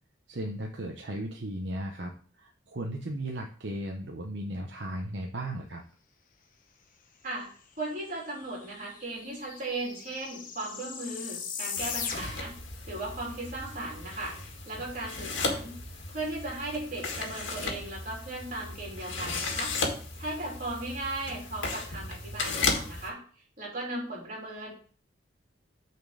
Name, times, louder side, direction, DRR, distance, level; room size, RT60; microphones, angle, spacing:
voice 1, 0.3-5.8 15.4-15.5, right 1 dB, 70° right, 2 dB, 0.8 m, -36 dB
voice 2, 7.2-12.5 12.9-14.4 14.6-15.8 16.1-19.8 20.2-23.2 23.6-24.7, right 2 dB, 45° right, -2 dB, 3.1 m, -37 dB
sound 1, 8.1-8.2 8.4-12.6, left 6 dB, 45° left, 1.0 m, -38 dB
sound 2, 11.8-23.1, left 3 dB, 85° left, 1.7 m, -35 dB
6.5 x 4.4 x 6.3 m, 0.43 s
head